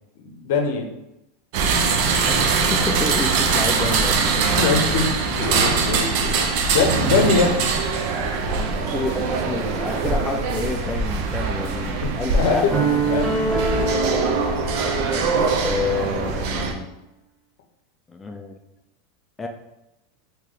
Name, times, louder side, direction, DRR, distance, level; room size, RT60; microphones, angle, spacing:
voice 1, 0.2-0.9 4.1-7.5 12.0-12.7 13.1-13.4, left 5 dB, 65° left, 3 dB, 0.7 m, -23 dB
sound 1, 1.5-16.7, right 5 dB, 60° right, 0.5 m, -22 dB
voice 2, 2.3-4.4 8.7-13.3 15.1-16.9 18.1-18.6 19.4-19.5, left 3 dB, 15° left, 3 dB, 0.3 m, -29 dB
sound 2, 12.7-16.0, right 3 dB, 15° right, 0.7 m, -25 dB
3.1 x 2.8 x 3.7 m, 0.90 s
supercardioid pair, 130°, 0 cm